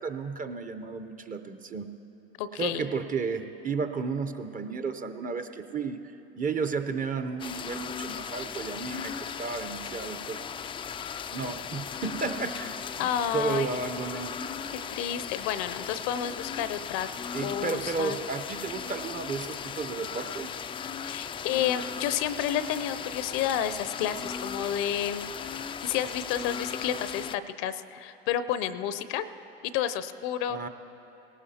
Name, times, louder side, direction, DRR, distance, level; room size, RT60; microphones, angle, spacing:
voice 1, 0.0-1.9 2.6-6.0 6.4-10.4 11.3-13.1 13.3-14.3 17.3-20.5 30.5-30.7, right 5 dB, 25° right, 8 dB, 0.7 m, -33 dB
voice 2, 2.4-2.9 13.0-13.7 14.9-17.1 17.4-18.2 21.0-25.4 25.8-29.3 29.6-30.7, left 10 dB, 60° left, 13 dB, 0.6 m, -30 dB
sound 1, 7.4-27.4, left 7 dB, 20° left, 0.3 m, -37 dB
19.0 x 18.0 x 2.8 m, 2.9 s
hypercardioid pair, 80°, 31 cm